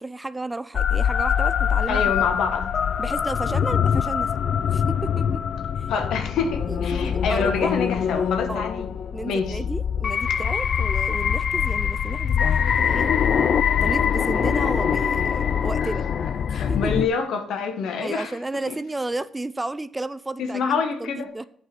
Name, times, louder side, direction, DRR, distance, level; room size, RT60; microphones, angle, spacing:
voice 1, 0.0-2.2 3.0-4.4 4.7-5.4 5.8-5.9 6.7-7.7 8.5-8.7 9.1-13.1 13.8-16.1 16.5-17.1 18.0-20.7 21.0-21.4, right 2 dB, 15° right, 0.3 m, -32 dB
sound 1, 0.7-17.1, left 8 dB, 55° left, 0.3 m, -23 dB
voice 2, 1.9-2.7 5.9-8.9 9.2-9.7 15.8-18.4 18.7-18.8 20.4-21.3, left 5 dB, 80° left, 1.2 m, -27 dB
8.9 x 4.8 x 5.8 m
cardioid pair, 90°, 0 cm